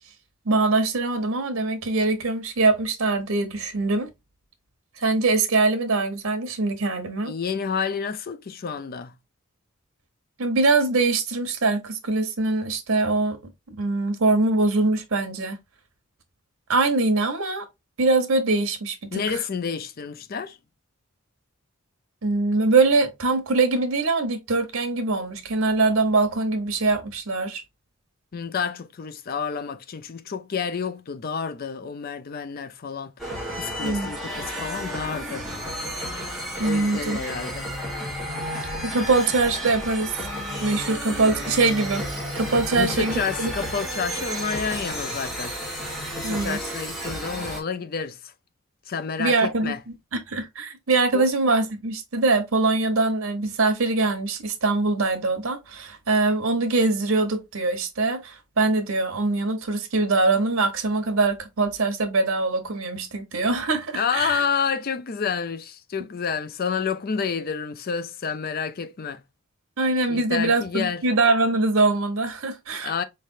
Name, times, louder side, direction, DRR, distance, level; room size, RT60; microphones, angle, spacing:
voice 1, 0.4-4.1 5.0-7.3 10.4-13.4 13.7-15.6 16.7-17.7 18.0-19.4 22.2-27.6 33.8-34.1 36.6-37.2 38.8-40.2 40.6-43.5 46.2-46.6 49.2-49.7 50.1-64.4 69.8-72.9, right 3 dB, 90° right, 1.0 m, -23 dB
voice 2, 7.3-9.1 19.1-20.6 28.3-35.5 36.6-37.7 42.7-45.6 46.2-48.3 48.9-49.8 51.1-51.3 63.9-69.2 70.1-71.1 72.8-73.0, left 6 dB, 45° left, 0.4 m, -29 dB
sound 1, 33.2-47.6, equal, ahead, 1.3 m, -32 dB
4.4 x 3.3 x 2.6 m
head